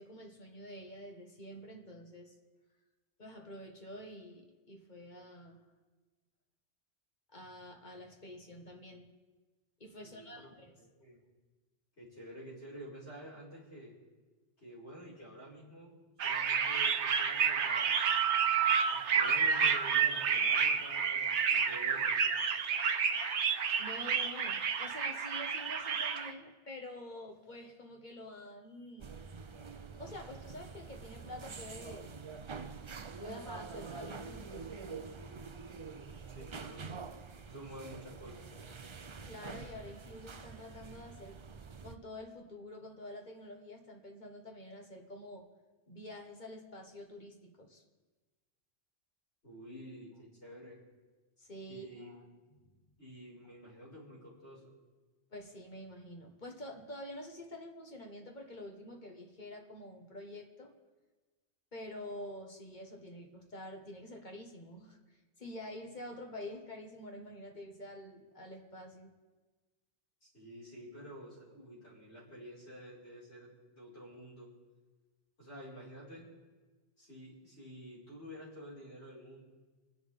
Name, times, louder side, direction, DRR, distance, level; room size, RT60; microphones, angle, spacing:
voice 1, 0.0-2.3 3.2-5.6 7.3-9.1 9.8-10.7 23.8-29.1 30.0-32.2 33.2-34.8 39.2-41.4 41.8-45.5 45.9-47.8 51.4-52.2 52.5-52.7 55.3-60.7 61.7-65.0 65.4-69.1, left 1 dB, 40° left, 2 dB, 1.7 m, -48 dB
voice 2, 10.0-10.5 10.8-11.2 12.0-13.9 14.6-15.9 16.2-18.1 18.9-22.2 36.3-37.1 37.5-38.4 49.4-50.8 51.7-52.1 53.0-54.7 70.2-74.5 75.4-76.3 77.0-79.4, equal, 70° left, -7 dB, 5.3 m, -50 dB
sound 1, 16.2-26.3, right 6 dB, 80° right, 1.1 m, -30 dB
sound 2, 29.0-41.9, right 5 dB, 35° right, 0.5 m, -46 dB
27.5 x 10.5 x 3.6 m, 1.3 s
omnidirectional pair, 1.2 m